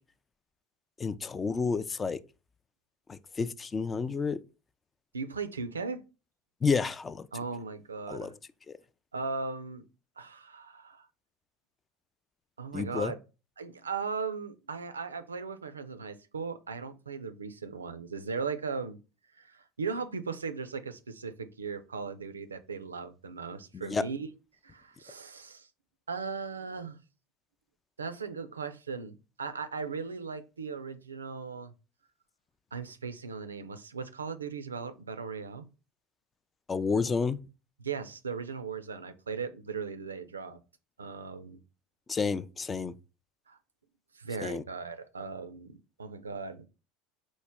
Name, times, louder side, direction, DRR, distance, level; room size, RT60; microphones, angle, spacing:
voice 1, 1.0-2.2 3.1-4.4 6.6-7.3 8.1-8.3 12.7-13.1 23.7-24.0 36.7-37.4 42.1-42.9 44.4-44.6, left 5 dB, 25° left, 0.3 m, -30 dB
voice 2, 5.1-6.0 7.3-8.3 9.1-9.9 10.2-11.1 12.6-13.2 13.6-19.0 19.3-24.3 24.6-25.7 26.1-27.0 28.0-31.7 32.7-35.7 37.8-40.6 41.0-41.6 43.5-43.6 44.1-46.7, right 5 dB, 85° right, 0.3 m, -38 dB
4.5 x 2.1 x 3.4 m
hypercardioid pair, 75°, 0 cm